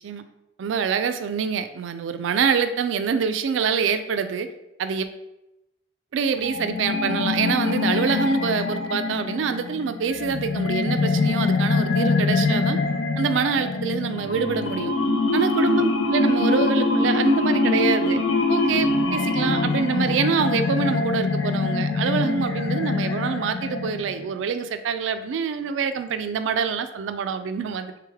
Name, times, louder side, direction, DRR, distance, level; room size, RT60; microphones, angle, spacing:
voice 1, 0.6-4.5 4.8-5.1 6.1-12.8 13.2-14.9 15.3-18.2 18.5-27.9, right 6 dB, 80° right, 10 dB, 0.3 m, -25 dB
sound 1, 6.4-24.3, left 3 dB, 75° left, 0.5 m, -24 dB
3.4 x 3.3 x 3.4 m, 0.90 s
head